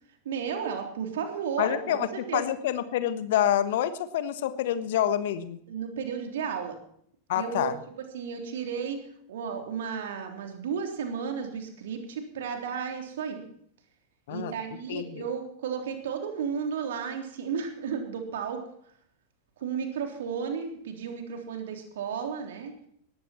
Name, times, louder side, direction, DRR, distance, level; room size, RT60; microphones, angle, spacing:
voice 1, 0.3-2.5 5.7-6.8 7.3-9.0 9.3-13.4 14.3-18.6 19.6-22.8, right 7 dB, 60° right, 4 dB, 3.6 m, -33 dB
voice 2, 1.6-5.6 7.3-7.8 14.3-14.5 14.9-15.3, left 11 dB, 55° left, 13 dB, 1.3 m, -27 dB
19.0 x 14.5 x 4.5 m, 0.65 s
figure-of-eight pair, 90°, 0 cm